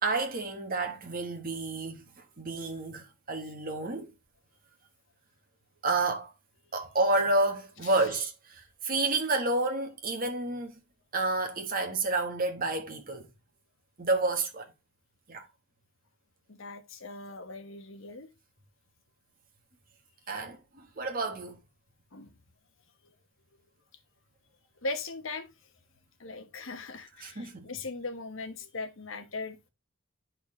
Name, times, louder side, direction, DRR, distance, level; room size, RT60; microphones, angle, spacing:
voice 1, 0.0-4.1 5.8-6.3 6.7-10.8 11.1-13.3 14.0-14.7 15.3-15.5 20.3-21.6 27.2-27.7, right 2 dB, 40° right, 1.5 m, -30 dB
voice 2, 16.5-18.3 22.1-22.3 24.8-25.5 26.2-29.7, left 3 dB, 65° left, 1.1 m, -39 dB
9.8 x 4.4 x 3.2 m
head